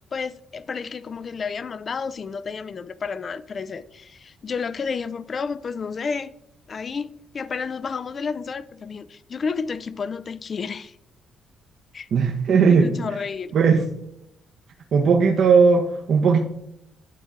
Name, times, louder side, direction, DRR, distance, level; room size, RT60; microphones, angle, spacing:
voice 1, 0.1-6.3 6.7-11.0 11.9-12.1 12.7-13.5, left 5 dB, 45° left, 0.4 m, -31 dB
voice 2, 12.1-12.9 13.5-13.8 14.9-16.4, right 5 dB, 65° right, 0.8 m, -17 dB
10.5 x 4.4 x 3.7 m
cardioid pair, 90°, 0 cm